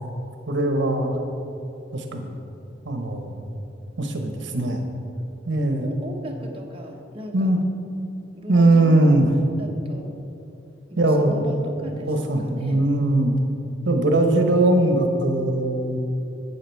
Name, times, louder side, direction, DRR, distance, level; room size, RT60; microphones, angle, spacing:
voice 1, 0.5-1.2 1.9-2.4 2.8-3.5 4.0-4.8 5.5-5.9 7.3-7.6 8.5-9.3 11.0-11.4 12.1-13.3 13.8-16.0, right 2 dB, 75° right, 4 dB, 1.0 m, -20 dB
voice 2, 5.8-7.6 8.3-9.1 9.6-10.2 10.9-12.1 12.4-12.9, equal, 30° right, 0 dB, 1.1 m, -37 dB
12.0 x 8.3 x 4.6 m, 2.7 s
head